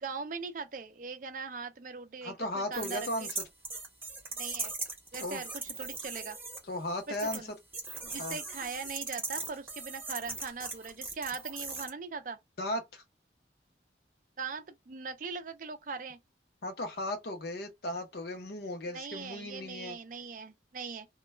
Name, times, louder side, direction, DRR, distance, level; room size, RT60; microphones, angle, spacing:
voice 1, 0.0-3.3 4.4-4.7 5.1-5.5 5.8-6.4 7.1-7.5 8.0-12.4 14.4-16.2 18.9-21.1, right 5 dB, 45° right, 0.4 m, -40 dB
voice 2, 2.2-3.3 5.2-5.4 6.6-7.4 8.2-8.4 12.6-13.0 16.6-20.0, left 1 dB, 55° left, 0.6 m, -36 dB
sound 1, 2.7-6.6 7.1-7.4 7.7-11.9, right 3 dB, 10° right, 0.8 m, -39 dB
2.2 x 2.1 x 3.1 m
head